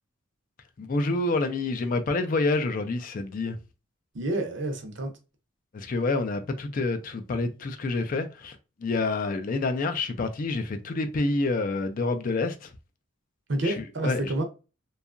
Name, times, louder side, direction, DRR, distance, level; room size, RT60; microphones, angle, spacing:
voice 1, 0.8-3.6 5.7-12.7 13.6-14.3, left 3 dB, 40° left, 0.4 m, -28 dB
voice 2, 4.1-5.1 13.5-14.4, right 1 dB, 60° right, 0.6 m, -29 dB
2.7 x 2.3 x 2.4 m
head